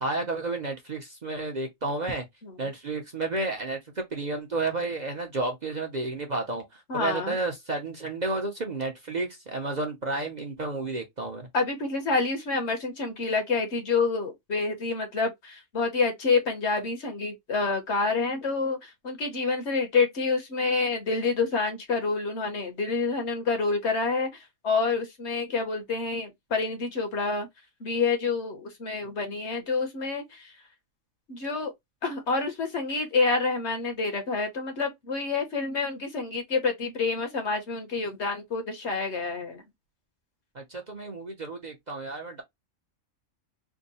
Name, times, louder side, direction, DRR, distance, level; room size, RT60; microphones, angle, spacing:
voice 1, 0.0-2.2 2.6-3.8 4.1-6.6 6.9-11.5 40.5-42.4, right 2 dB, 40° right, 0.8 m, -31 dB
voice 2, 6.9-7.4 11.5-27.5 27.8-30.5 31.3-31.7 32.0-39.6, left 4 dB, 60° left, 1.3 m, -28 dB
3.5 x 2.1 x 4.0 m
omnidirectional pair, 1.3 m